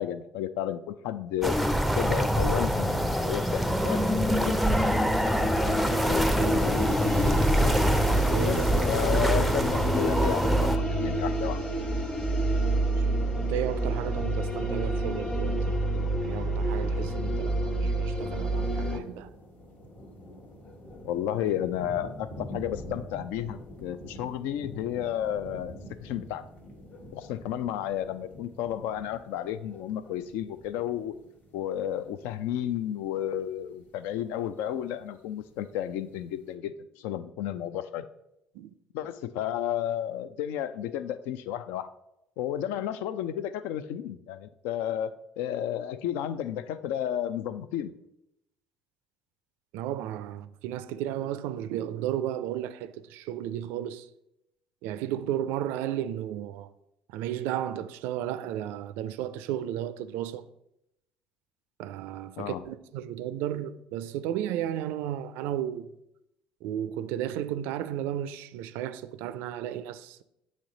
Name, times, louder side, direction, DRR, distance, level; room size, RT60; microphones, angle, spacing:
voice 1, 0.0-1.6 2.0-4.6 8.4-11.6 21.0-25.7 26.0-26.4 27.1-31.2 31.5-38.1 38.9-41.9 42.4-47.9 62.4-62.6, left 11 dB, 70° left, 0.4 m, -32 dB
sound 1, 1.4-10.8, equal, ahead, 0.5 m, -25 dB
sound 2, 4.7-19.0, right 1 dB, 25° left, 1.2 m, -28 dB
voice 2, 6.3-6.9 8.3-8.6 12.8-15.8 16.2-19.3 38.5-38.7 49.7-54.1 54.8-56.7 57.1-60.5 61.8-65.9 66.6-70.2, right 11 dB, 70° right, 0.3 m, -34 dB
sound 3, 18.1-36.5, equal, 50° left, 1.1 m, -47 dB
8.4 x 3.1 x 3.8 m
hypercardioid pair, 55°, 4 cm